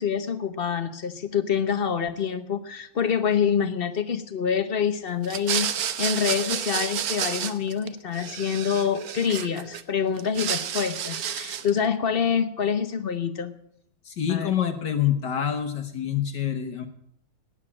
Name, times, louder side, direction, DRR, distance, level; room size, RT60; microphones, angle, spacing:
voice 1, 0.0-13.5 14.3-14.5, left 7 dB, 45° left, 11 dB, 0.8 m, -26 dB
sound 1, 5.2-7.9 8.1-9.8 10.2-11.8, right 9 dB, 60° right, 1.2 m, -30 dB
voice 2, 14.1-16.9, left 9 dB, 70° left, 5 dB, 1.7 m, -26 dB
12.0 x 10.0 x 8.6 m, 0.71 s
omnidirectional pair, 2.0 m